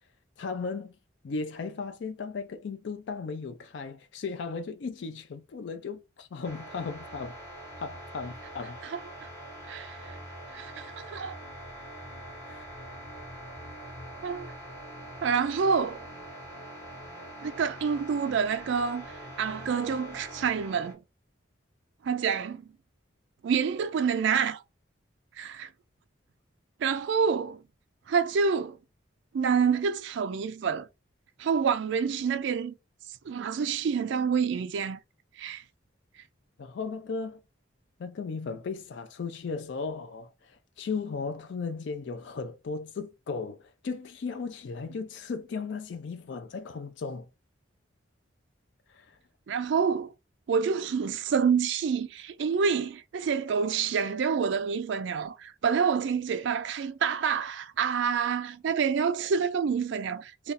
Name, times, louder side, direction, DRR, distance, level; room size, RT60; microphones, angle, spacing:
voice 1, 0.4-1.0 1.2-7.4 7.8-8.8 12.4-12.7 36.6-37.4 38.0-47.3 48.9-49.2, left 4 dB, 60° left, 0.4 m, -36 dB
sound 1, 6.4-20.9, right 1 dB, 15° left, 1.4 m, -44 dB
voice 2, 8.8-9.3 9.7-10.2 10.5-11.4 14.2-14.5 15.2-16.1 17.4-21.0 22.0-22.6 23.4-24.6 25.4-25.7 26.8-27.6 28.1-28.8 29.3-30.9 31.4-32.7 33.2-35.0 35.4-35.6 49.5-50.1 50.5-60.5, right 6 dB, 65° right, 0.3 m, -28 dB
2.5 x 2.3 x 3.9 m
head